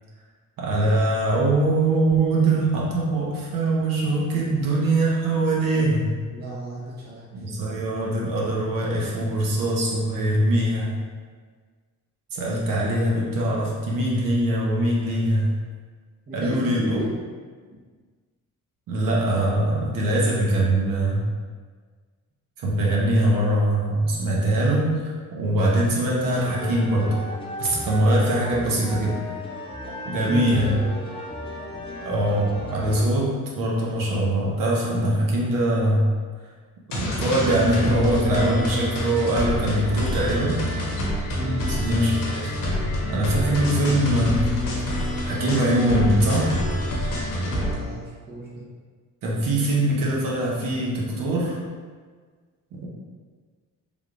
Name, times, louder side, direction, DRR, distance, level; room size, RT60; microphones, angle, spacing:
voice 1, 0.6-6.1 7.3-10.9 12.3-15.5 16.3-17.0 18.9-21.3 22.6-25.0 25.3-27.2 27.6-29.3 30.0-30.8 32.0-36.1 36.9-40.6 41.7-42.5 43.1-44.4 45.2-46.5 49.2-51.6 52.7-52.9, right 1 dB, 80° right, -4 dB, 0.9 m, -22 dB
voice 2, 6.3-7.3 16.3-17.1 30.3-31.0 41.3-41.7 47.5-48.5, right 1 dB, 30° right, -5 dB, 0.7 m, -33 dB
sound 1, 26.3-33.0, left 1 dB, 20° left, 0.3 m, -35 dB
sound 2, 36.9-47.8, equal, 85° left, 0.9 m, -27 dB
3.4 x 3.1 x 2.5 m, 1.5 s
cardioid pair, 165°, 32 cm